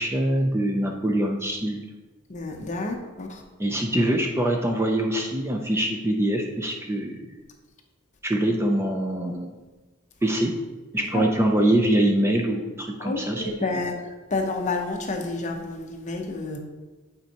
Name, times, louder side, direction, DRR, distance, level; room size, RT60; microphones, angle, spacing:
voice 1, 0.0-1.8 3.6-7.2 8.2-9.5 10.2-10.5 10.9-13.7, right 1 dB, 10° right, 2 dB, 0.4 m, -24 dB
voice 2, 2.3-3.4 11.1-11.2 13.0-13.9 14.3-16.6, left 3 dB, 35° left, 3 dB, 0.7 m, -29 dB
8.8 x 4.4 x 2.8 m, 1.2 s
head